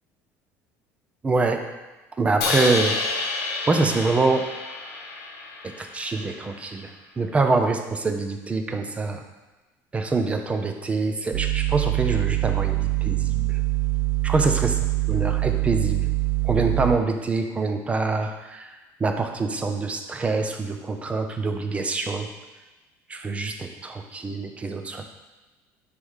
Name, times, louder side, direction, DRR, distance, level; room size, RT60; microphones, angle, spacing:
voice 1, 1.2-1.7 2.2-3.0 3.7-4.5 5.6-6.9 7.2-9.3 9.9-13.6 14.2-14.7 15.1-16.1 16.4-18.7 19.0-22.3 23.1-25.0, right 3 dB, 20° right, 5 dB, 0.8 m, -25 dB
Crash cymbal, 2.4-6.6, left 3 dB, 85° left, 1.5 m, -29 dB
sound 1, 11.3-17.0, right 19 dB, 70° right, 0.6 m, -24 dB
9.9 x 3.4 x 5.5 m, 1.1 s
cardioid pair, 125°, 7 cm